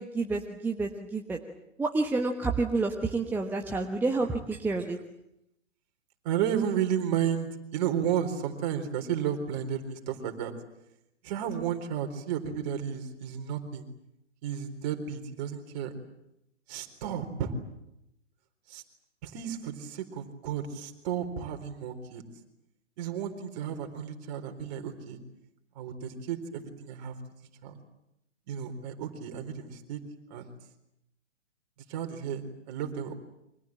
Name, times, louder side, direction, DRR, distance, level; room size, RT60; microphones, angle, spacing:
voice 1, 0.0-1.4 1.8-5.0, right 3 dB, 5° right, 2 dB, 1.2 m, -29 dB
voice 2, 6.2-10.5 11.2-13.9 14.4-15.9 16.7-17.5 18.7-18.8 19.2-22.2 23.0-25.2 25.8-27.1 27.6-27.8 28.5-30.0 30.3-30.5 31.9-32.4 32.7-33.1, right 9 dB, 35° right, 5 dB, 4.1 m, -32 dB
29.0 x 25.0 x 7.6 m, 0.83 s
figure-of-eight pair, 120°, 36 cm